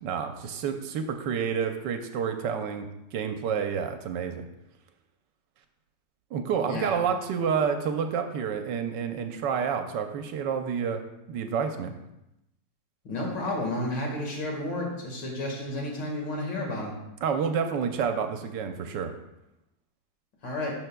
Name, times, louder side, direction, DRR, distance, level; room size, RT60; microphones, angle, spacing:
voice 1, 0.0-4.5 6.3-11.0 11.3-11.9 17.2-19.1, right 7 dB, 75° right, 7 dB, 1.3 m, -29 dB
voice 2, 13.1-16.9 20.4-20.7, left 1 dB, 75° left, -1 dB, 2.5 m, -31 dB
12.0 x 6.6 x 2.3 m, 0.90 s
omnidirectional pair, 2.0 m